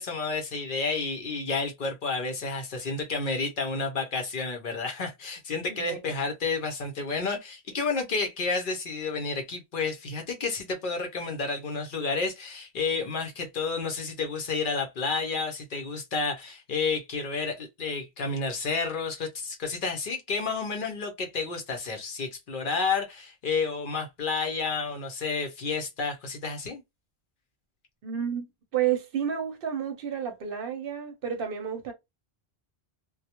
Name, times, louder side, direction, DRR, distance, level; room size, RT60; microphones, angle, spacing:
voice 1, 0.0-26.8, left 4 dB, 60° left, 0.7 m, -30 dB
voice 2, 5.7-6.0 28.0-28.5 28.7-31.9, right 9 dB, 60° right, 0.7 m, -30 dB
2.2 x 2.0 x 2.8 m
omnidirectional pair, 1.1 m